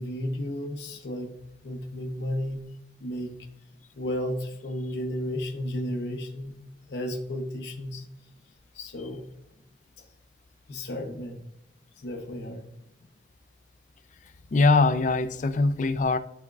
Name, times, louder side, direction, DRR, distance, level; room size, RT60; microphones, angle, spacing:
voice 1, 0.0-1.3 1.6-2.7 3.0-3.4 4.0-6.6 6.9-8.1 8.7-9.3 10.0-10.1 10.7-11.4 12.0-12.7, left 1 dB, 75° left, 0.8 m, -33 dB
voice 2, 14.5-16.2, left 3 dB, 45° left, 0.4 m, -22 dB
11.0 x 4.3 x 2.3 m
head